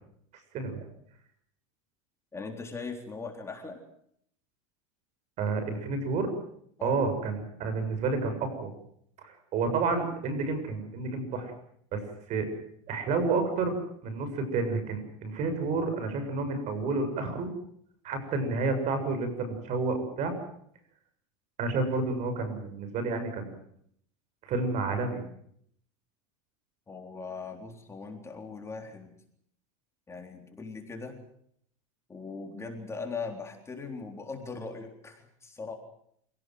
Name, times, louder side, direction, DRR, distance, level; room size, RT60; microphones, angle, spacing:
voice 1, 2.3-3.8 6.8-7.0 26.9-29.2 30.1-31.2 32.1-35.7, left 4 dB, 15° left, 3 dB, 3.9 m, -40 dB
voice 2, 5.4-6.3 6.8-8.7 9.2-11.5 11.9-12.0 12.3-12.5 12.9-13.7 14.0-17.5 18.0-20.3 21.6-23.5 24.4-25.2, right 3 dB, 45° right, 9 dB, 7.4 m, -30 dB
27.5 x 18.0 x 7.8 m, 0.68 s
supercardioid pair, 120°, 16 cm